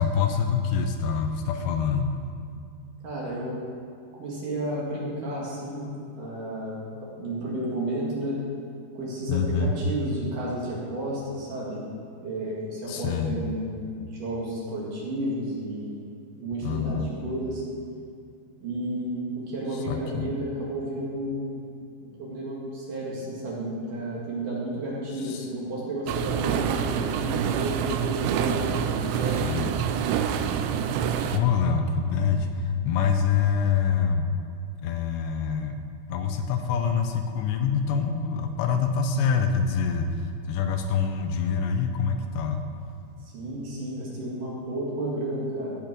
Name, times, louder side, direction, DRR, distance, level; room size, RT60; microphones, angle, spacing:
voice 1, 0.0-2.2 9.3-9.7 12.9-13.4 16.6-17.1 19.7-20.3 25.2-25.5 29.2-29.7 31.3-34.3 34.8-35.8 36.1-42.7, left 6 dB, 80° left, 6 dB, 2.8 m, -26 dB
voice 2, 3.0-3.6 4.2-5.9 6.1-8.4 8.9-11.8 12.2-16.1 16.4-17.6 18.6-21.6 22.0-29.7 43.2-45.8, right 1 dB, 55° right, -5 dB, 3.2 m, -32 dB
sound 1, 26.1-31.4, right 8 dB, 85° right, 3.0 m, -26 dB
15.5 x 6.5 x 6.1 m, 2.4 s
omnidirectional pair, 5.2 m